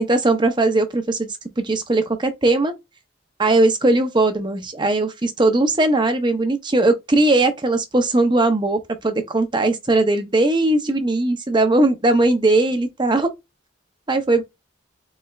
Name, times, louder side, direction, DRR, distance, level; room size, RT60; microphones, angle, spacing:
voice 1, 0.0-2.7 3.4-13.3 14.1-14.4, right 2 dB, 20° right, 0.6 m, -19 dB
4.2 x 3.2 x 2.3 m
head